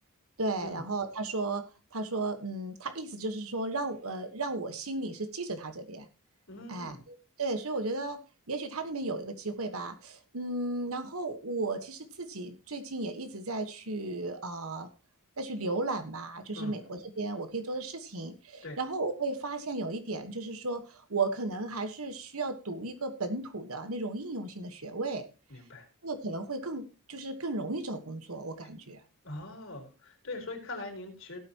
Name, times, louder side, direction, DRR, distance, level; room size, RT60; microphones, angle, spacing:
voice 1, 0.4-1.6 1.9-6.1 6.7-8.2 8.5-14.9 15.4-25.3 26.0-29.0, right 2 dB, 75° right, 8 dB, 1.4 m, -35 dB
voice 2, 6.5-7.0 16.5-16.8 18.6-18.8 25.5-25.9 29.2-31.4, left 2 dB, 60° left, 2 dB, 4.5 m, -42 dB
17.0 x 9.0 x 3.0 m, 0.32 s
head